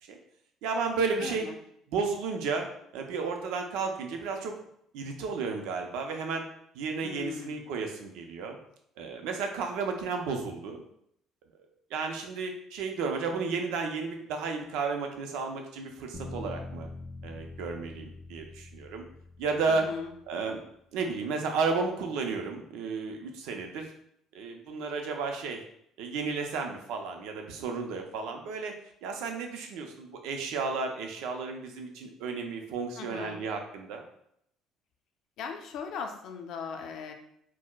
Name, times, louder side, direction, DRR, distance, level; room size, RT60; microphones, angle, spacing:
voice 1, 0.6-1.5 1.9-2.7 2.9-4.6 4.9-6.4 6.7-8.6 9.0-10.8 11.9-16.9 17.2-19.0 19.4-19.8 20.3-20.6 20.9-23.9 24.3-25.6 26.0-28.7 29.0-34.0, right 4 dB, 80° right, 3 dB, 0.5 m, -33 dB
voice 2, 1.2-1.5 7.0-7.7 19.7-20.1 33.0-33.5 35.4-37.1, left 6 dB, 60° left, 4 dB, 0.4 m, -39 dB
sound 1, 16.1-20.2, left 2 dB, 5° right, 0.5 m, -44 dB
4.4 x 2.0 x 2.2 m, 0.72 s
cardioid pair, 145°, 0 cm